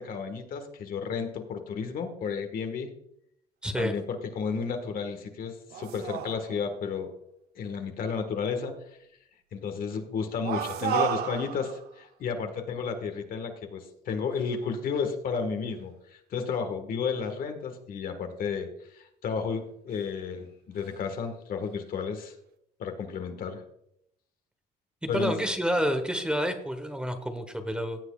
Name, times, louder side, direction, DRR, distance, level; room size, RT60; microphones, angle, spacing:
voice 1, 0.0-2.9 3.8-7.1 7.5-8.7 9.5-22.3 22.8-23.6 25.1-25.3, left 5 dB, 60° left, 6 dB, 1.6 m, -32 dB
voice 2, 3.6-4.0 25.1-28.0, equal, 5° right, 7 dB, 1.2 m, -29 dB
sound 1, 5.7-6.9 10.4-12.0 14.3-14.5 19.9-20.1 20.8-21.0, right 9 dB, 70° right, 0.9 m, -33 dB
16.5 x 8.0 x 2.4 m, 0.76 s
cardioid pair, 110°, 17 cm